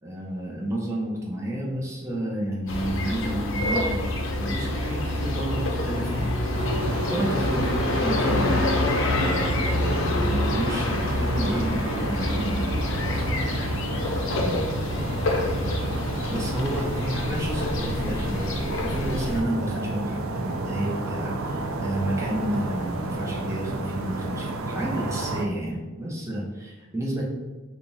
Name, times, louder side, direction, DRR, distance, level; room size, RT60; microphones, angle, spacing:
voice 1, 0.0-4.0 4.4-6.4 7.1-7.7 8.0-8.6 9.1-12.7 13.0-13.4 14.4-14.7 16.3-27.3, right 1 dB, 15° right, -3 dB, 0.7 m, -31 dB
sound 1, 2.7-19.4, left 1 dB, 65° left, 0.6 m, -27 dB
sound 2, 6.5-25.4, right 2 dB, 85° right, 0.5 m, -31 dB
3.6 x 2.3 x 4.0 m, 1.2 s
head